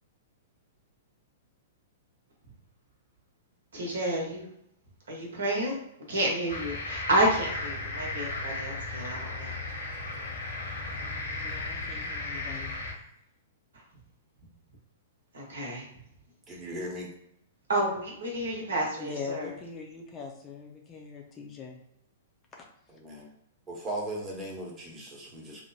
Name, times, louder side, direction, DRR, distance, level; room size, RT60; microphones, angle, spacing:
voice 1, 3.7-4.5 5.1-5.8 6.1-9.5 15.3-15.9 17.7-19.5, right 1 dB, 65° right, -1 dB, 1.0 m, -30 dB
sound 1, 6.5-12.9, left 2 dB, 80° left, 1.0 m, -35 dB
voice 2, 11.4-12.8 19.0-21.8, left 5 dB, 20° left, 0 dB, 0.5 m, -41 dB
voice 3, 16.5-17.1 22.9-23.3 23.7-25.6, right 1 dB, 20° right, -2 dB, 1.0 m, -37 dB
3.2 x 2.1 x 2.8 m, 0.78 s
figure-of-eight pair, 105°, 0 cm